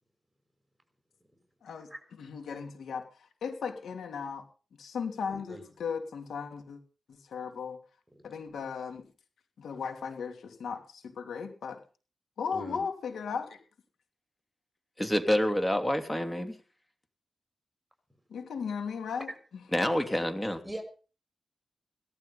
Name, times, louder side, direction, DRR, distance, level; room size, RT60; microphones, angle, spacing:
voice 1, 1.6-4.5 4.8-6.8 7.1-7.8 8.2-9.1 9.6-11.8 12.4-13.6 18.3-20.1, left 6 dB, 85° left, 6 dB, 2.9 m, -37 dB
voice 2, 5.3-5.7 12.5-12.8 19.3-19.4 20.6-20.8, right 1 dB, 10° right, 5 dB, 6.1 m, -40 dB
voice 3, 15.0-16.5 19.7-20.6, left 1 dB, 15° left, 7 dB, 2.9 m, -27 dB
18.0 x 12.5 x 5.6 m, 0.37 s
cardioid pair, 70°, 0 cm